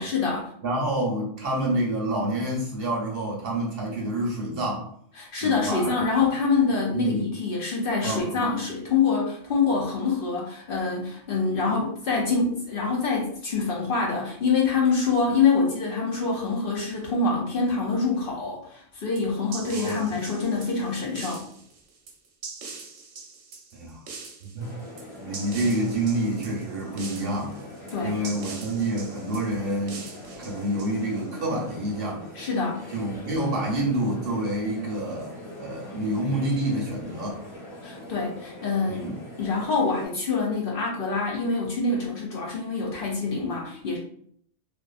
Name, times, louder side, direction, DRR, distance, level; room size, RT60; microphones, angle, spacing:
voice 1, 0.0-0.5 5.2-21.4 27.9-28.2 32.3-32.8 37.8-39.1 39.4-44.0, left 4 dB, 55° left, -3 dB, 0.7 m, -25 dB
voice 2, 0.6-4.9 5.4-6.3 6.9-7.3 8.0-8.4 19.6-20.2 23.7-24.0 24.5-24.7 25.2-27.5 28.0-30.0 30.4-32.2 32.9-37.4 38.9-39.2, right 1 dB, 60° right, -2 dB, 0.8 m, -28 dB
sound 1, 19.2-31.4, right 4 dB, 85° right, 1.0 m, -42 dB
sound 2, 24.6-40.1, left 1 dB, 35° left, 1.1 m, -42 dB
2.4 x 2.4 x 2.3 m, 0.63 s
omnidirectional pair, 1.2 m